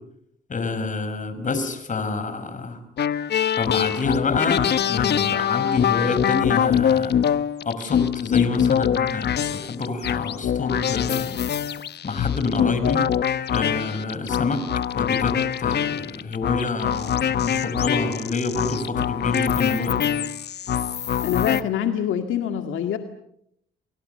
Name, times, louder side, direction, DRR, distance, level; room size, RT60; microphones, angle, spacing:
voice 1, 0.5-2.8 3.6-7.2 7.6-11.5 12.0-13.1 13.5-14.7 15.0-20.2, left 3 dB, 40° left, 10 dB, 5.7 m, -27 dB
sound 1, 3.0-21.6, left 9 dB, 55° left, 1.1 m, -24 dB
voice 2, 21.2-23.0, left 9 dB, 80° left, 6 dB, 2.1 m, -25 dB
30.0 x 23.5 x 6.8 m, 0.72 s
cardioid pair, 90°, 20 cm